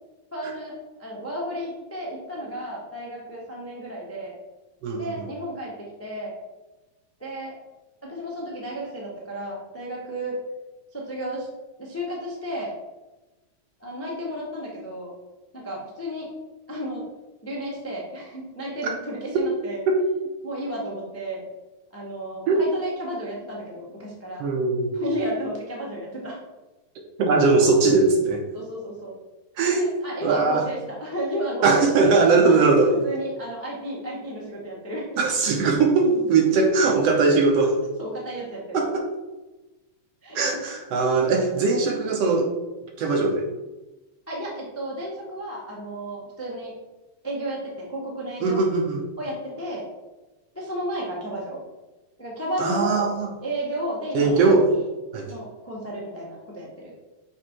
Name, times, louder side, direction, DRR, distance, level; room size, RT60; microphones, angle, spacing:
voice 1, 0.3-4.4 4.9-6.4 7.2-7.5 8.0-10.4 10.9-11.5 11.8-12.7 13.8-15.1 15.5-16.3 16.7-17.0 17.4-19.8 20.4-21.4 21.9-24.5 24.9-26.4 28.5-29.1 29.8-32.1 32.5-35.2 38.0-38.8 40.2-40.6 42.1-42.3 44.3-46.7 47.2-48.6 49.2-49.8 50.5-51.6 52.2-53.1 53.4-54.5 55.2-56.9, equal, 15° left, -4 dB, 0.5 m, -33 dB
voice 2, 4.8-5.1 19.9-20.0 22.5-22.6 24.4-24.9 27.2-28.4 29.6-29.9 30.2-30.6 31.6-32.9 35.2-37.8 38.7-39.1 40.4-42.5 43.0-43.5 48.4-49.0 52.6-53.3 54.1-54.7 55.1-55.3, right 4 dB, 70° right, 2 dB, 1.6 m, -20 dB
6.1 x 5.1 x 4.6 m, 1.1 s
omnidirectional pair, 3.3 m